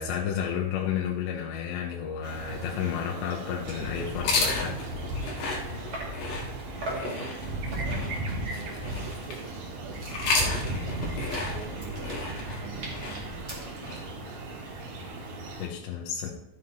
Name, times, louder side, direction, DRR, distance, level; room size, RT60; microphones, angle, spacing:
voice 1, 0.0-4.8 15.6-16.3, left 8 dB, 85° left, 0 dB, 2.9 m, -31 dB
sound 1, 2.2-15.7, right 1 dB, 55° right, 2.7 m, -36 dB
sound 2, 3.3-3.4 3.6-3.9 4.3-6.3 6.8-7.2 7.7-8.2 8.6-14.1, right 1 dB, 40° right, 1.4 m, -42 dB
sound 3, 4.1-9.5 10.0-14.0, left 3 dB, 60° left, 2.8 m, -33 dB
voice 2, 6.8-7.6 8.4-13.2, right 7 dB, 80° right, 3 dB, 3.3 m, -45 dB
12.5 x 7.7 x 3.1 m, 0.86 s
omnidirectional pair, 5.1 m